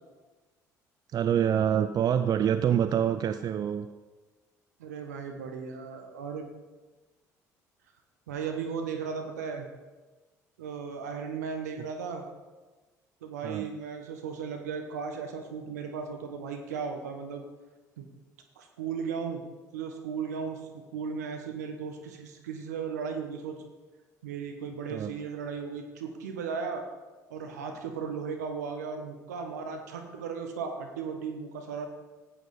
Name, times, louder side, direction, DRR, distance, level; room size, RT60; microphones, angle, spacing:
voice 1, 1.1-3.9 13.4-13.7 24.9-25.1, right 9 dB, 50° right, 11 dB, 0.5 m, -26 dB
voice 2, 4.8-6.5 8.3-9.7 10.6-12.2 13.2-17.4 18.0-18.1 18.6-19.4 19.7-23.6 24.2-26.8 27.3-31.9, right 6 dB, 80° right, 4 dB, 1.3 m, -36 dB
15.0 x 9.1 x 4.2 m, 1.2 s
hypercardioid pair, 55°, 9 cm